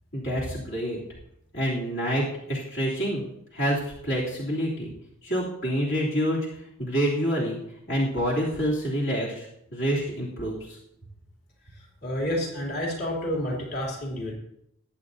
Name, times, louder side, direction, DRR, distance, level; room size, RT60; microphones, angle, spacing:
voice 1, 0.1-1.0 1.5-3.2 3.5-4.9 5.2-6.4 6.8-7.6 7.9-9.5 9.7-10.8, equal, 65° left, -6 dB, 3.1 m, -27 dB
voice 2, 11.7-14.3, left 1 dB, 50° left, -3 dB, 3.3 m, -30 dB
20.5 x 8.7 x 2.8 m, 0.78 s
head